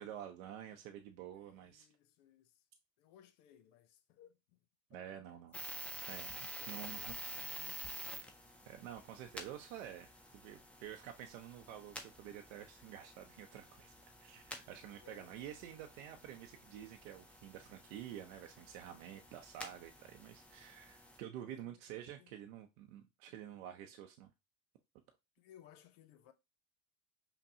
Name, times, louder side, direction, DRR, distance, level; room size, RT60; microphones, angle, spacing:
voice 1, 0.0-1.9 4.9-5.6 6.1-7.1 8.7-10.1 10.3-24.3, right 10 dB, 70° right, 0.6 m, -49 dB
voice 2, 1.4-2.7 3.0-4.6 4.9-6.1 6.6-8.3 15.0-15.5 21.4-21.8 22.2-22.4 25.4-26.3, left 11 dB, 60° left, 0.8 m, -63 dB
sound 1, 5.5-21.2, equal, 5° left, 0.3 m, -50 dB
5.4 x 2.2 x 2.7 m
hypercardioid pair, 95°, 42 cm